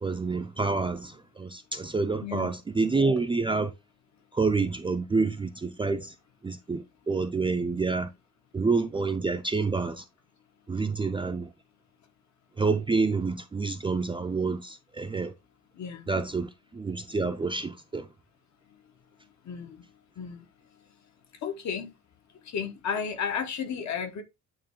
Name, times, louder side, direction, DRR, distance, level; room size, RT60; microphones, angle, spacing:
voice 1, 0.0-3.7 4.3-6.1 6.4-8.1 8.5-10.0 10.7-11.5 12.6-15.3 16.1-18.1, right 4 dB, 15° right, 0.4 m, -28 dB
voice 2, 2.2-2.5 15.7-16.1 19.4-19.8 20.2-20.4 21.4-21.9 22.4-24.2, left 6 dB, 70° left, 1.2 m, -33 dB
8.9 x 3.1 x 3.7 m
wide cardioid pair, 155°, 29 cm